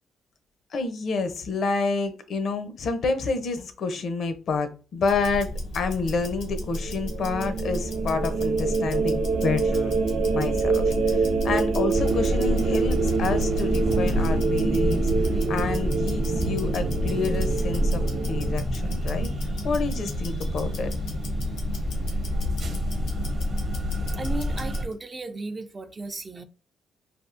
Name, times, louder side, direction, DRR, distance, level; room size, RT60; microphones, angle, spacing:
voice 1, 0.7-9.9 10.3-18.0 18.3-19.3 19.6-20.9, left 4 dB, 60° left, 0.6 m, -29 dB
Tick-tock, 5.0-24.9, left 1 dB, 85° left, 1.0 m, -30 dB
sound 1, 6.6-18.5, right 5 dB, 80° right, 0.6 m, -26 dB
sound 2, 11.9-24.8, right 1 dB, 45° right, 0.8 m, -31 dB
voice 2, 24.1-26.4, right 3 dB, 30° right, 0.3 m, -35 dB
3.5 x 2.4 x 2.4 m
cardioid pair, 90°, 0 cm